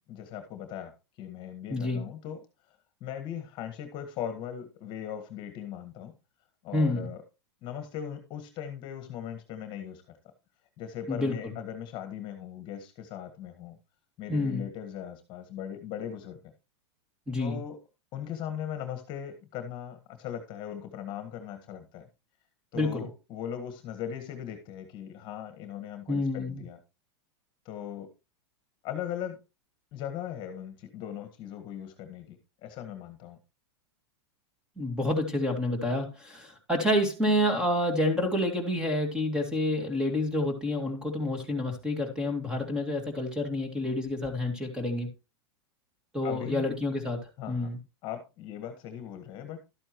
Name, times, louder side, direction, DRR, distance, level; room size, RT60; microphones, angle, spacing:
voice 1, 0.1-0.9 1.2-2.4 3.0-6.1 6.6-7.2 7.6-10.0 10.8-13.8 14.2-16.4 17.4-17.8 18.1-22.0 22.7-26.8 27.6-28.1 28.8-29.4 29.9-33.4 46.2-46.7 47.4-47.7 48.0-49.6, left 9 dB, 35° left, 8 dB, 1.6 m, -39 dB
voice 2, 1.7-2.0 6.7-7.0 11.1-11.5 14.3-14.6 17.3-17.6 22.7-23.0 26.1-26.6 34.8-45.1 46.1-47.8, left 1 dB, 5° right, 5 dB, 2.4 m, -28 dB
12.5 x 8.8 x 3.1 m, 0.28 s
supercardioid pair, 150°, 14 cm